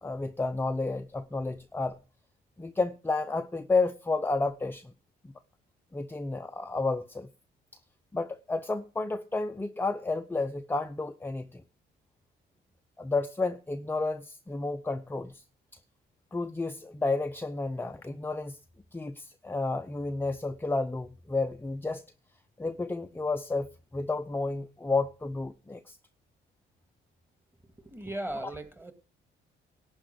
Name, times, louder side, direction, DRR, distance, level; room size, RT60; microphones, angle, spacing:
voice 1, 0.0-2.0 2.6-4.9 5.2-5.3 5.9-7.3 8.1-11.6 13.0-15.4 16.3-18.6 18.9-22.0 22.6-26.0 28.3-28.5, left 3 dB, 10° left, 0.6 m, -31 dB
voice 2, 27.8-28.9, right 1 dB, 10° right, 1.9 m, -37 dB
11.5 x 4.9 x 8.5 m
cardioid pair, 90°, 20 cm